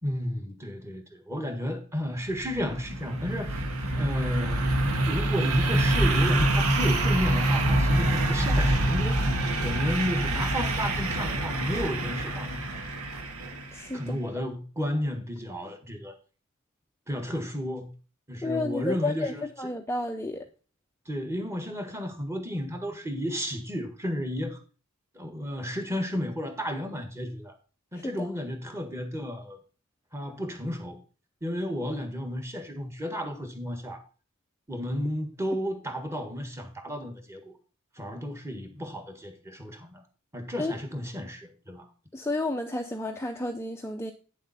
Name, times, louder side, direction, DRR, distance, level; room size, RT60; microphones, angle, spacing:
voice 1, 0.0-3.5 4.0-4.6 5.1-9.3 9.6-12.6 13.9-16.1 17.1-17.9 18.3-19.4 21.0-24.6 25.1-27.6 27.9-29.6 30.1-31.0 31.4-34.0 34.7-37.5 37.9-40.0 40.3-41.9, equal, 15° right, 6 dB, 1.6 m, -32 dB
sound 1, 2.2-13.9, right 1 dB, 85° right, 1.8 m, -26 dB
voice 2, 13.7-14.3 18.4-19.3 19.6-20.4 28.0-28.3 40.6-40.8 42.1-44.1, left 2 dB, 10° left, 4 dB, 0.6 m, -31 dB
9.2 x 7.3 x 4.2 m, 0.36 s
head